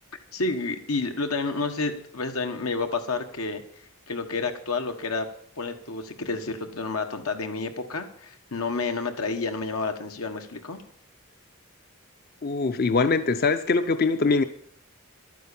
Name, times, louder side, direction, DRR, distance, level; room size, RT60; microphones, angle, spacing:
voice 1, 0.3-3.6 4.1-5.3 5.6-10.8, left 3 dB, 90° left, 1.5 m, -30 dB
voice 2, 12.4-14.4, left 4 dB, 45° left, 0.5 m, -22 dB
12.0 x 9.3 x 7.0 m
head